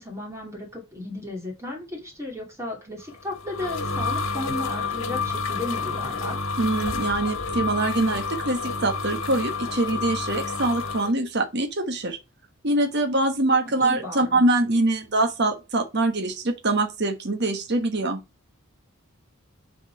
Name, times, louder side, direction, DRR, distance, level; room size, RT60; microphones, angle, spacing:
voice 1, 0.0-6.4 13.8-14.4, left 2 dB, 15° right, 2.6 m, -34 dB
sound 1, 3.1-11.1, left 4 dB, 65° left, 1.6 m, -29 dB
voice 2, 6.6-12.2 12.6-18.2, right 2 dB, 50° right, 1.2 m, -24 dB
9.5 x 4.2 x 4.7 m
head